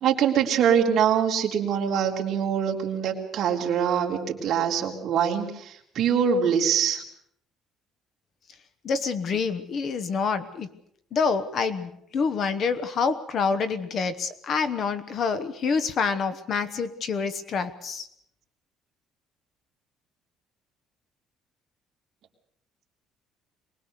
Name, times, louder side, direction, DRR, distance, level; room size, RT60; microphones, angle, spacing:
voice 1, 0.0-7.0, right 8 dB, 45° right, 0 dB, 3.2 m, -24 dB
voice 2, 8.8-10.7 11.1-18.1, left 5 dB, 40° left, 13 dB, 1.1 m, -27 dB
24.0 x 20.5 x 6.7 m, 0.70 s
cardioid pair, 180°, 0 cm